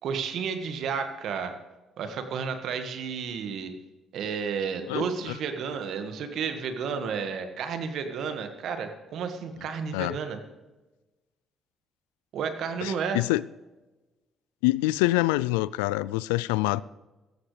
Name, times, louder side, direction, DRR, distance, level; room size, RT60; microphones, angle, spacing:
voice 1, 0.0-1.5 2.0-3.7 4.1-10.4 12.3-13.2, right 6 dB, 65° right, 1.8 m, -32 dB
voice 2, 12.8-13.4 14.6-16.8, left 19 dB, 85° left, 0.3 m, -25 dB
16.5 x 14.0 x 3.4 m
hypercardioid pair, 55°, 0 cm